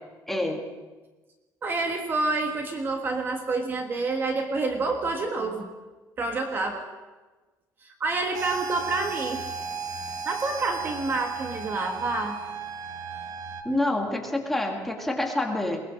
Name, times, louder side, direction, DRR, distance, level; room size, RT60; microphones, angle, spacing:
voice 1, 0.3-0.6 13.6-15.8, left 1 dB, 5° left, 1 dB, 2.2 m, -27 dB
voice 2, 1.6-5.7 6.2-6.9 7.8-9.4 10.2-12.4, right 3 dB, 25° right, 4 dB, 1.6 m, -28 dB
sound 1, 8.3-13.6, right 5 dB, 45° right, 1.6 m, -35 dB
21.5 x 19.5 x 6.4 m, 1.2 s
cardioid pair, 170°, 8 cm